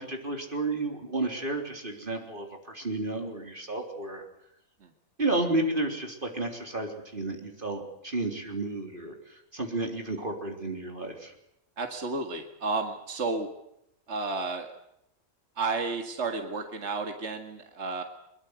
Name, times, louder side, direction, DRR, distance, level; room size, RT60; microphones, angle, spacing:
voice 1, 0.0-4.2 5.2-11.3, right 2 dB, 35° right, 3 dB, 3.9 m, -32 dB
voice 2, 11.8-13.5 14.1-14.7 15.6-18.0, right 3 dB, 50° right, 5 dB, 2.3 m, -32 dB
23.0 x 23.0 x 8.2 m, 0.80 s
omnidirectional pair, 1.5 m